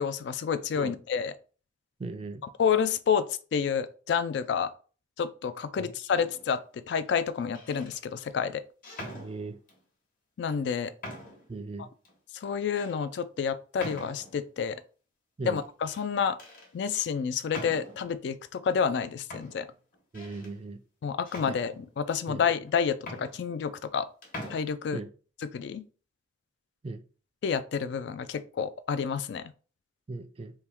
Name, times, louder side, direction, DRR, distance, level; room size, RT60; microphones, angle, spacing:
voice 1, 0.0-1.3 2.6-3.3 3.5-4.7 5.2-8.6 10.4-10.9 12.4-14.8 15.4-16.4 16.7-19.7 21.0-24.1 24.5-25.0 25.4-25.9 27.4-29.5, left 6 dB, 65° left, 0.3 m, -29 dB
voice 2, 2.0-2.4 5.8-5.9 9.0-9.6 11.5-11.9 15.4-15.6 20.1-20.8 21.5-21.6 22.3-22.4 24.9-25.1 26.8-27.0 30.1-30.5, right 3 dB, 30° right, 0.3 m, -38 dB
sound 1, 6.1-6.6 7.4-8.0 8.8-9.8 10.5-10.6 11.0-11.5 12.0-12.1 12.8-12.9 13.8-14.4 15.6-16.1 16.4-16.7 17.5-18.1 18.9-19.0 19.3-20.5 21.2-22.1 22.7-22.8 23.0-24.0 24.2-24.6, left 1 dB, 45° left, 1.1 m, -43 dB
3.5 x 2.2 x 4.4 m
head